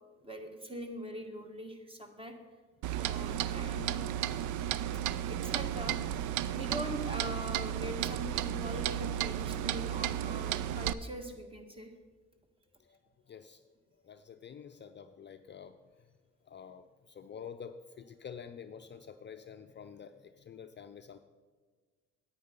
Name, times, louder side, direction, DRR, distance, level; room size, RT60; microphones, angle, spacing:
voice 1, 0.2-2.3 3.0-4.0 4.9-5.0 5.3-6.0 6.5-11.9, equal, 20° right, 4 dB, 1.7 m, -42 dB
Clock, 2.8-10.9, right 11 dB, 80° right, 0.5 m, -33 dB
voice 2, 4.4-5.3 12.8-13.6 14.0-16.1 16.4-21.2, left 7 dB, 35° left, 8 dB, 0.5 m, -49 dB
9.4 x 8.9 x 5.3 m, 1.5 s
cardioid pair, 90°, 30 cm